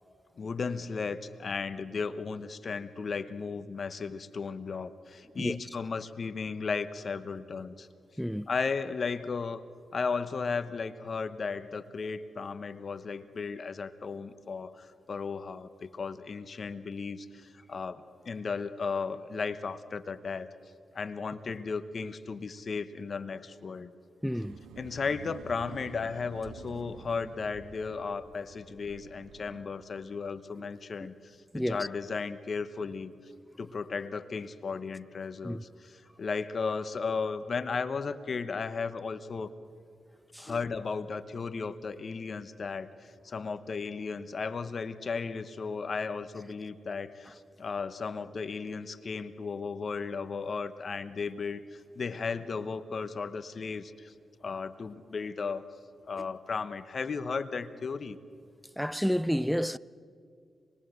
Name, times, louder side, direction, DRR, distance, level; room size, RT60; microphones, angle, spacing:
voice 1, 0.4-7.9 8.5-9.6 9.9-20.5 20.9-23.9 24.8-33.1 33.6-39.5 40.4-54.1 54.4-55.6 56.1-58.2, left 5 dB, 55° left, 1.0 m, -35 dB
voice 2, 24.2-24.6 31.5-31.9 35.4-35.6 40.3-40.6 58.8-59.8, equal, ahead, 0.5 m, -30 dB
sound 1, 24.4-29.6, right 5 dB, 90° right, 1.5 m, -49 dB
26.5 x 21.0 x 8.0 m
cardioid pair, 55°, 0 cm